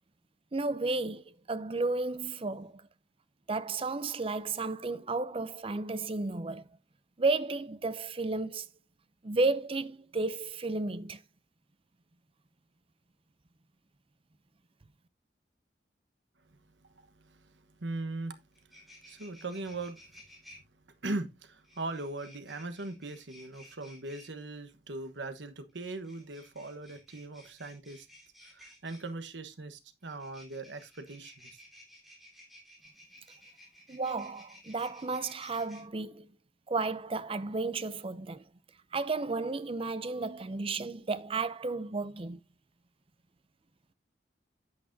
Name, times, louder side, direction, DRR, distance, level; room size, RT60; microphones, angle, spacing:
voice 1, 0.5-2.9 3.5-6.7 7.2-8.7 9.2-11.2 33.9-36.3 36.7-38.4 38.9-42.4, right 3 dB, 30° right, 0.6 m, -33 dB
voice 2, 16.9-18.4 19.1-20.0 21.0-28.1 28.5-31.6 34.3-34.4, right 2 dB, 85° right, 1.3 m, -40 dB
sound 1, 18.2-18.3 18.5-20.6 21.6-24.3 25.7-29.1 30.0-35.8, left 1 dB, ahead, 3.6 m, -55 dB
10.0 x 8.8 x 2.7 m
head